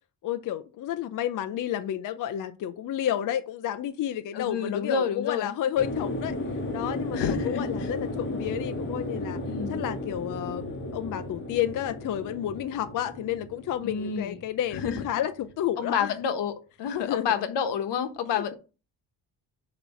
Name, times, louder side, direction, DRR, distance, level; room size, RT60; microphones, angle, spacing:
voice 1, 0.2-6.4 6.7-9.4 9.7-16.2 17.0-17.5 18.3-18.6, left 11 dB, 50° left, 0.5 m, -31 dB
voice 2, 4.3-5.5 7.1-7.7 9.5-9.8 13.8-14.4 14.7-15.0 15.8-18.6, left 7 dB, 85° left, 1.1 m, -29 dB
sound 1, 5.8-15.5, left 1 dB, 30° left, 1.1 m, -34 dB
7.0 x 3.0 x 5.6 m
cardioid pair, 160°, 41 cm